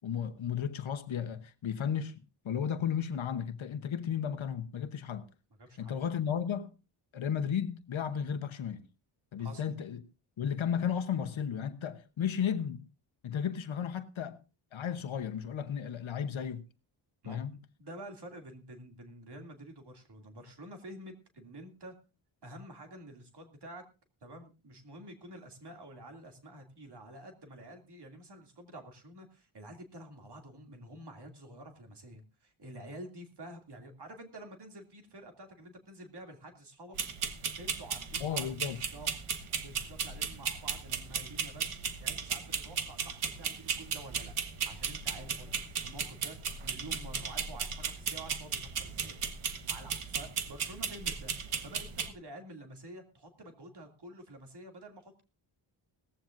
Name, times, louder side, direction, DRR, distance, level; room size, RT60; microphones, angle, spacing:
voice 1, 0.0-5.3 5.8-6.7 7.1-8.9 9.3-10.0 10.4-12.8 13.2-14.4 14.7-16.7 17.3-17.5 38.2-38.8, left 8 dB, 70° left, 1.0 m, -34 dB
voice 2, 5.6-5.9 9.4-9.6 17.2-17.4 17.8-21.9 22.4-23.8 24.2-37.0 37.6-39.1 39.6-44.3 44.6-51.3 51.6-55.2, right 1 dB, 50° right, 2.7 m, -49 dB
sound 1, 37.0-52.1, right 6 dB, 85° right, 1.5 m, -36 dB
18.5 x 15.0 x 2.6 m
wide cardioid pair, 170°, 50 cm